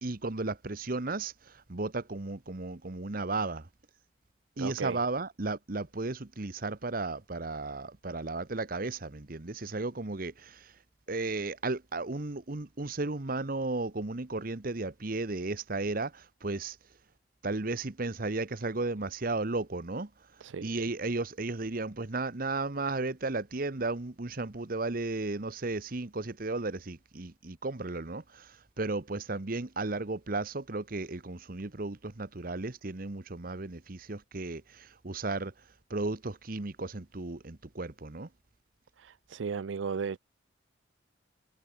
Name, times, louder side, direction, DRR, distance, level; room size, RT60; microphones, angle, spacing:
voice 1, 0.0-3.7 4.6-10.7 11.1-16.8 17.4-20.1 20.6-35.5 35.9-38.3, right 3 dB, 50° right, 1.1 m, -34 dB
voice 2, 4.6-5.0 20.4-20.7 39.0-40.2, right 5 dB, 85° right, 0.5 m, -35 dB
head